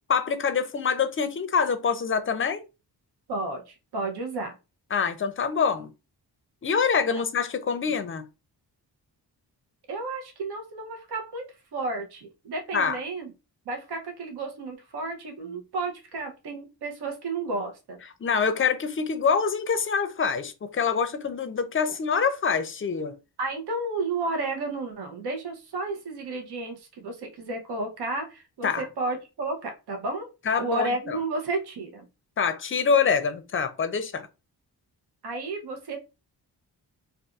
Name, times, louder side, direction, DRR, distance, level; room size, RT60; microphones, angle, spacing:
voice 1, 0.1-2.6 4.9-5.9 6.6-8.3 12.7-13.0 18.2-23.2 28.6-28.9 30.5-31.2 32.4-34.3, left 6 dB, 30° left, 0.5 m, -25 dB
voice 2, 3.3-4.5 7.1-7.2 9.9-13.3 13.7-18.0 23.4-30.3 30.6-32.1 35.2-36.0, right 2 dB, 70° right, 0.8 m, -32 dB
2.5 x 2.4 x 2.3 m
cardioid pair, 65°, 41 cm